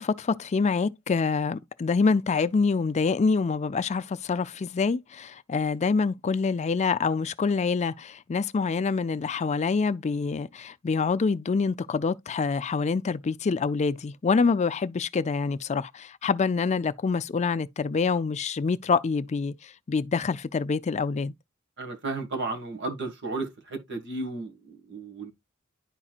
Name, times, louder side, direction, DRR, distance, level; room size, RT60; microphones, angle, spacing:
voice 1, 0.0-21.3, left 4 dB, 30° left, 0.4 m, -26 dB
voice 2, 21.8-25.3, right 3 dB, 55° right, 1.7 m, -34 dB
11.0 x 4.2 x 2.4 m
head